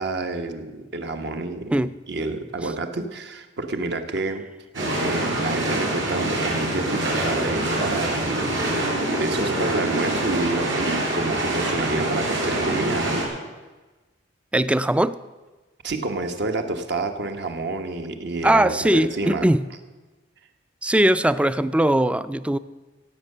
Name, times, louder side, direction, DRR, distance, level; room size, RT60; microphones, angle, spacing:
voice 1, 0.0-1.8 2.1-4.4 5.0-8.5 9.2-13.2 15.8-19.5, right 2 dB, 60° right, 6 dB, 1.2 m, -28 dB
sound 1, 4.7-13.3, right 1 dB, 80° right, 4.3 m, -25 dB
voice 2, 14.5-15.2 18.4-19.6 20.8-22.6, right 1 dB, 5° right, 15 dB, 0.3 m, -20 dB
16.0 x 8.2 x 6.6 m, 1.2 s
head